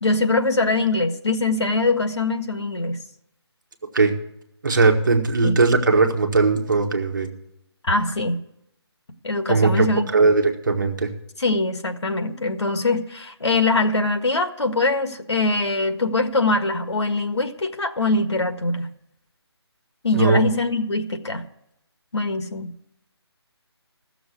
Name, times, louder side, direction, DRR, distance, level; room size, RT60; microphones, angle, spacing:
voice 1, 0.0-3.0 5.4-5.6 7.8-8.4 9.2-10.3 11.4-18.9 20.0-21.4 22.1-22.7, left 2 dB, 85° left, 7 dB, 1.7 m, -23 dB
voice 2, 4.6-7.3 9.5-9.9 10.1-11.1 20.1-20.4, right 4 dB, 45° right, 4 dB, 1.6 m, -19 dB
14.5 x 7.1 x 8.3 m, 0.81 s
hypercardioid pair, 175°, 14 cm